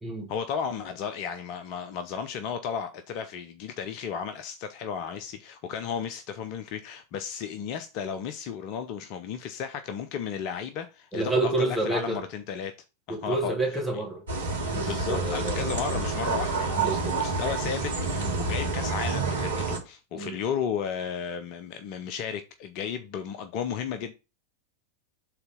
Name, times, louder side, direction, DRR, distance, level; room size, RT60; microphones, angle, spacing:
voice 1, 0.3-12.7 13.1-13.5 13.9-14.0 14.8-24.1, left 7 dB, 45° left, 0.7 m, -34 dB
voice 2, 11.1-12.2 13.1-14.2 14.7-15.7 16.8-17.2 18.2-18.4 20.2-20.4, right 2 dB, 5° right, 2.3 m, -29 dB
sound 1, 14.3-19.8, right 3 dB, 65° right, 1.7 m, -28 dB
5.7 x 4.0 x 5.3 m
figure-of-eight pair, 90°, 0 cm